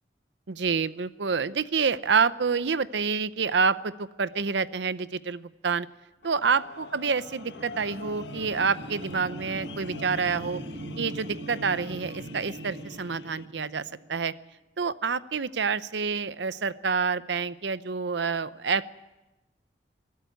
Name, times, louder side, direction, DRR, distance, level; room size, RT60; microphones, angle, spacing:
voice 1, 0.5-5.9 6.2-10.6 11.0-14.3 14.8-18.9, right 5 dB, 85° right, 15 dB, 0.7 m, -28 dB
sound 1, 6.2-13.5, left 4 dB, 75° left, 1.4 m, -47 dB
sound 2, 6.7-14.4, right 1 dB, 65° right, 2.8 m, -40 dB
22.5 x 13.0 x 9.3 m, 1.0 s
head